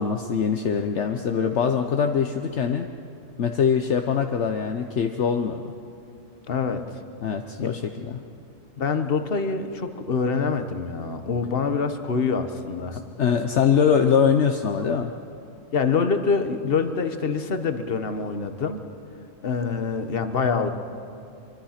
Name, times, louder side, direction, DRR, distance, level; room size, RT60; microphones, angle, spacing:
voice 1, 0.0-2.9 3.4-5.6 7.2-8.2 13.2-15.1, left 7 dB, 65° left, 5 dB, 1.1 m, -23 dB
voice 2, 6.5-6.8 7.6-7.8 8.8-13.0 15.7-18.8 19.4-20.7, left 5 dB, 50° left, 8 dB, 1.4 m, -25 dB
24.5 x 24.0 x 5.9 m, 2.6 s
omnidirectional pair, 1.3 m